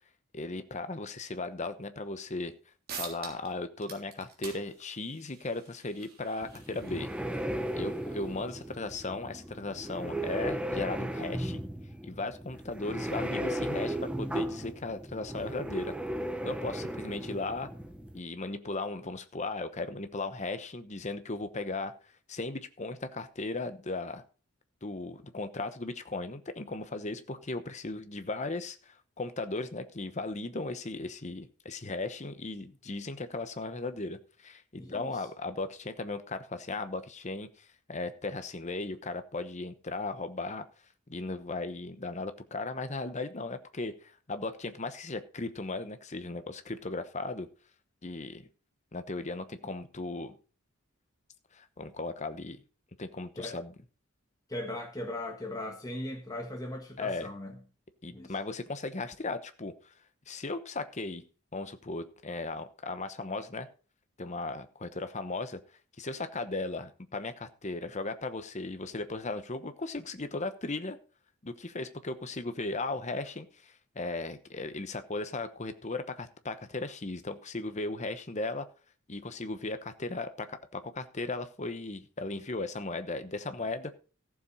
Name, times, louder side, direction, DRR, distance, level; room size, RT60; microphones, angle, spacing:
voice 1, 0.3-2.5 3.0-7.1 7.7-11.6 12.0-15.9 16.4-17.7 18.1-21.9 22.3-24.2 24.8-40.6 41.1-47.5 48.0-48.5 48.9-50.3 51.5-52.6 53.0-53.7 57.0-57.3 58.0-59.7 60.3-61.2 61.5-63.7 64.2-65.6 66.0-71.0 71.4-78.7 79.1-83.9, left 3 dB, 30° left, 1.0 m, -36 dB
sound 1, 2.5-2.6 2.9-3.5 3.8-8.9, right 5 dB, 45° right, 3.2 m, -47 dB
sound 2, 6.4-18.2, equal, 5° right, 0.9 m, -36 dB
voice 2, 34.8-35.2 53.4-53.6 54.5-57.6 58.1-58.3, left 1 dB, 15° left, 1.4 m, -38 dB
14.5 x 7.3 x 4.1 m
head